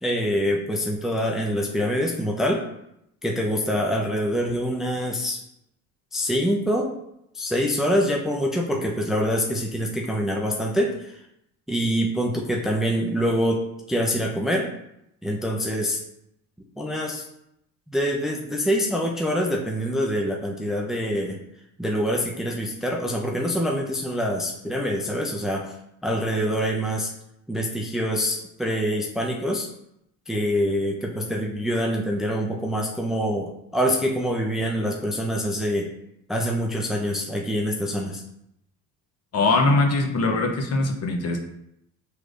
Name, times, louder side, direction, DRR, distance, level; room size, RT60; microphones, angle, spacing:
voice 1, 0.0-2.6 3.2-5.4 6.1-6.9 7.3-11.2 11.7-14.7 15.2-16.0 16.8-17.2 17.9-21.4 21.8-25.8 26.0-27.1 27.5-29.7 30.3-35.9 36.3-38.2, equal, ahead, 0 dB, 0.6 m, -25 dB
voice 2, 39.3-41.4, left 2 dB, 45° left, 2 dB, 0.9 m, -21 dB
6.1 x 3.4 x 2.5 m, 0.78 s
supercardioid pair, 95°, 36 cm